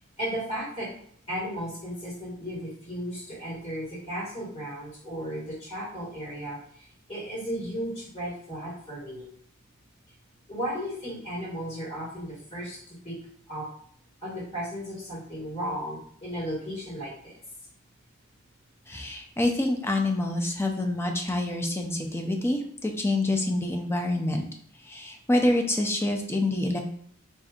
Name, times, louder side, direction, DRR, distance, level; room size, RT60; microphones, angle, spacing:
voice 1, 0.2-0.9 1.3-9.3 10.5-13.2 13.5-13.7 14.2-17.3, equal, 30° left, -8 dB, 1.5 m, -35 dB
voice 2, 18.9-24.4 24.9-26.8, left 1 dB, 10° left, 3 dB, 0.4 m, -27 dB
4.9 x 2.6 x 2.4 m, 0.63 s
head